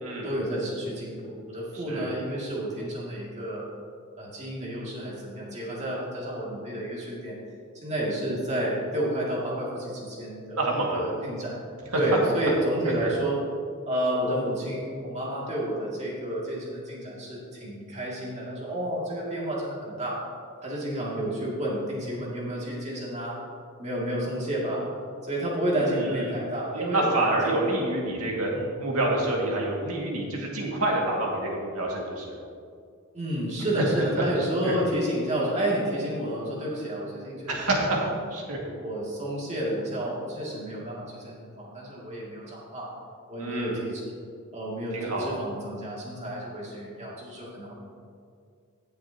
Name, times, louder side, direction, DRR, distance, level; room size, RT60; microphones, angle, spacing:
voice 1, 0.2-3.7 4.2-7.4 7.8-10.6 10.9-11.5 11.9-13.4 13.9-20.2 20.6-23.4 23.8-24.8 25.2-27.8 28.5-28.7 33.1-37.9 38.8-42.9 43.3-44.0 44.5-47.7, right 1 dB, 30° right, -5 dB, 2.6 m, -30 dB
voice 2, 1.7-2.1 10.6-11.0 11.9-12.0 25.9-26.4 26.7-28.5 28.8-32.4 34.6-34.8 37.5-38.6 43.4-43.8 44.9-45.3, right 2 dB, 75° right, -2 dB, 2.1 m, -27 dB
18.0 x 6.7 x 2.9 m, 2.3 s
head